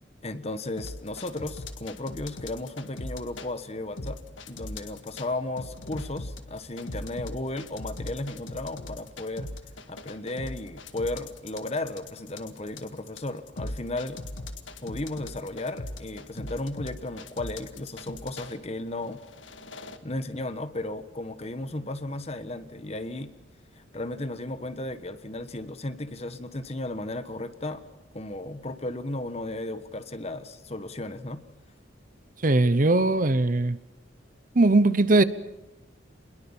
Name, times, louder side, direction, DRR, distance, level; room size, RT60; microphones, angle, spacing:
voice 1, 0.2-4.2 4.5-9.5 9.9-14.2 14.8-19.2 20.0-23.3 23.9-27.8 28.1-31.4, left 2 dB, 35° left, 1.3 m, -34 dB
sound 1, 0.8-3.5 4.0-5.3 5.6-18.5 19.1-20.0, left 2 dB, 85° left, 1.8 m, -39 dB
voice 2, 32.4-33.8 34.5-35.2, right 2 dB, 45° right, 0.9 m, -20 dB
27.0 x 21.5 x 7.2 m
head